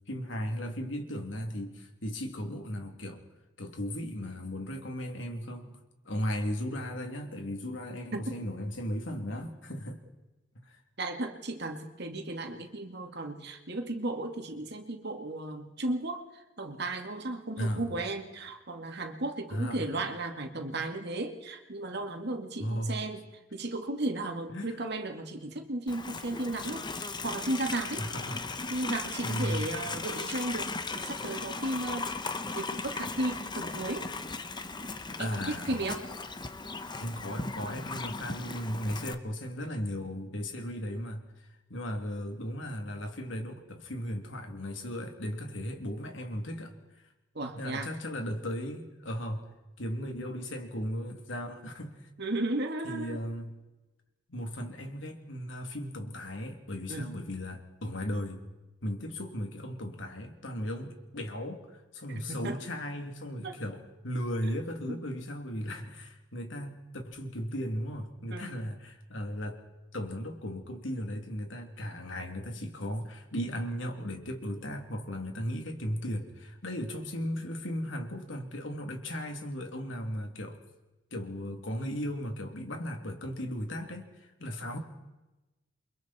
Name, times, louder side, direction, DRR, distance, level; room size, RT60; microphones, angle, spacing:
voice 1, 0.1-3.2 3.6-5.8 6.0-10.0 10.5-10.8 17.6-17.8 19.5-19.8 22.6-23.0 24.5-24.8 28.0-28.5 29.2-29.7 35.2-35.8 37.0-41.2 41.7-46.7 47.6-49.4 49.8-52.1 52.8-53.5 54.3-58.4 58.8-69.6 69.9-80.6 81.1-84.8, equal, 85° left, 4 dB, 3.1 m, -36 dB
voice 2, 11.0-23.2 23.5-28.0 28.7-32.1 32.5-34.1 35.2-36.0 47.3-47.9 52.2-53.2 56.9-57.1 62.3-62.6 63.4-63.6 64.9-65.0 68.3-68.5, right 2 dB, 60° right, 4 dB, 2.3 m, -35 dB
Livestock farm animals working animals, 25.9-39.1, left 3 dB, 25° left, 1.0 m, -37 dB
29.0 x 24.0 x 4.4 m, 1.0 s
head